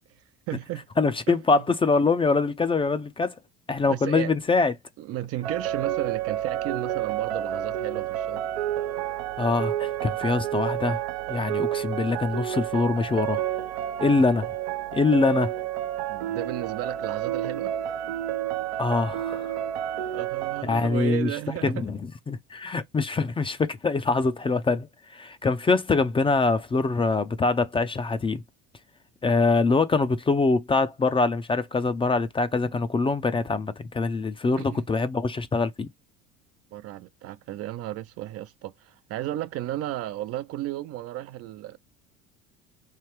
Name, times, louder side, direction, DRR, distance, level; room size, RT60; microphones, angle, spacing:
voice 1, 0.5-0.9 1.3-1.6 3.9-4.3 5.0-8.4 16.1-17.8 20.1-21.9 34.6-34.8 36.7-41.8, right 14 dB, 50° right, 0.5 m, -34 dB
voice 2, 1.0-3.3 3.7-4.7 9.4-11.0 11.3-13.4 14.0-14.5 14.9-15.5 18.8-19.6 20.6-21.3 21.6-22.0 22.3-24.9 25.1-28.4 29.2-35.9, left 3 dB, 15° left, 0.5 m, -24 dB
sound 1, 5.4-20.6, right 12 dB, 80° right, 0.7 m, -30 dB
3.4 x 2.8 x 4.5 m
hypercardioid pair, 80°, 32 cm